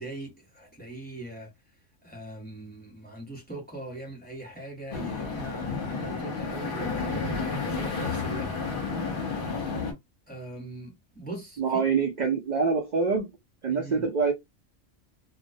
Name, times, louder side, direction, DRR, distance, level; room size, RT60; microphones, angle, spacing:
voice 1, 0.0-1.5 2.0-8.5 8.9-9.0 10.3-11.8 13.7-14.0, right 2 dB, 10° left, 0.9 m, -41 dB
sound 1, 4.9-9.9, left 4 dB, 50° left, 0.8 m, -31 dB
voice 2, 11.6-13.3 13.6-14.3, right 5 dB, 60° right, 0.5 m, -25 dB
2.3 x 2.0 x 2.6 m
omnidirectional pair, 1.3 m